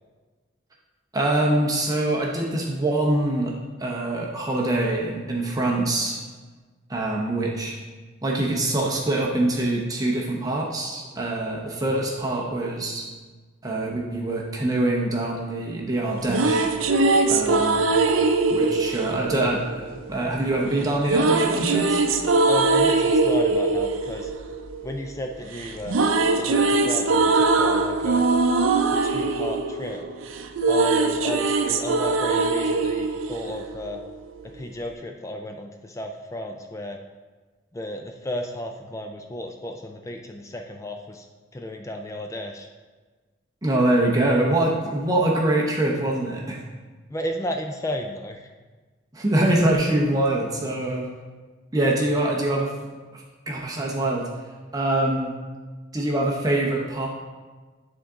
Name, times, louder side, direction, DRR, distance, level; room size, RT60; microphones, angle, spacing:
voice 1, 1.1-3.5 3.8-6.2 6.9-7.8 8.2-13.0 13.6-16.7 17.3-17.8 18.5-22.0 43.6-46.6 49.1-51.1 51.7-52.7 53.1-54.3 54.7-55.3 55.9-57.1, right 1 dB, 20° right, -2 dB, 0.7 m, -24 dB
sound 1, 16.0-20.2 21.1-25.3 25.6-34.1, right 3 dB, 85° right, 0.5 m, -22 dB
voice 2, 22.5-24.3 24.8-26.0 26.4-28.2 29.0-30.1 30.7-34.0 34.4-37.0 37.7-41.3 41.5-42.7 47.1-48.5, left 1 dB, 15° left, 3 dB, 0.3 m, -33 dB
9.9 x 3.8 x 3.6 m, 1.3 s
head